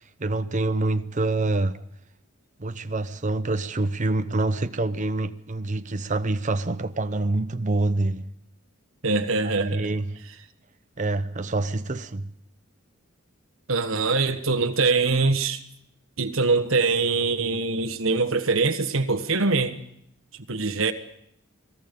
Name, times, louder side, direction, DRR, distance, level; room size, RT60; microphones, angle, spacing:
voice 1, 0.2-1.8 2.6-8.3 9.4-10.2 11.0-12.3, right 2 dB, 35° right, 0.8 m, -26 dB
voice 2, 9.0-9.9 13.7-15.6 16.2-19.8 20.5-20.9, right 3 dB, 65° right, 1.4 m, -23 dB
29.5 x 20.5 x 5.3 m
head